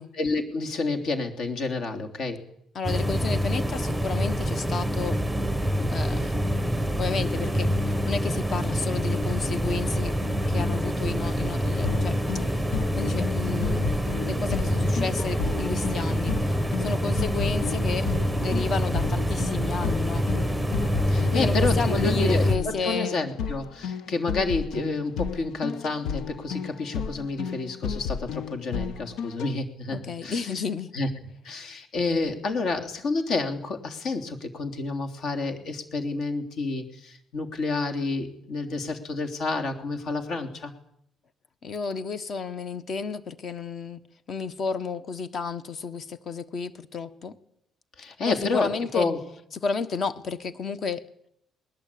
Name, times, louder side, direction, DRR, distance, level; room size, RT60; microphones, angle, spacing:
voice 1, 0.1-2.4 21.1-30.4 30.9-31.1 31.4-40.7 48.0-49.2, left 3 dB, 55° left, 4 dB, 3.2 m, -29 dB
voice 2, 2.7-5.2 5.9-6.3 7.0-10.1 10.5-12.4 13.0-14.0 14.2-18.1 18.4-20.3 21.3-23.2 29.9-30.9 41.6-44.0 44.3-47.4 48.3-49.1 49.5-51.0, left 5 dB, 35° left, 13 dB, 1.4 m, -32 dB
sound 1, 2.8-22.6, equal, ahead, 1.1 m, -26 dB
sound 2, 11.8-29.5, left 7 dB, 90° left, 1.0 m, -33 dB
21.0 x 20.0 x 8.6 m, 0.72 s
cardioid pair, 165°, 0 cm